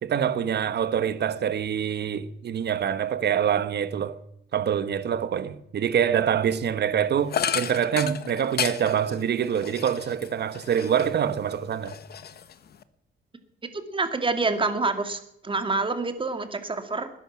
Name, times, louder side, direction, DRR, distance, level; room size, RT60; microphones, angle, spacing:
voice 1, 0.0-4.1 4.5-12.0, right 8 dB, 55° right, 1.2 m, -25 dB
sound 1, 7.3-11.3 11.7-12.8, left 8 dB, 55° left, 1.1 m, -32 dB
voice 2, 13.7-17.1, right 3 dB, 25° right, 2.2 m, -27 dB
19.5 x 11.0 x 6.0 m
cardioid pair, 90°, 20 cm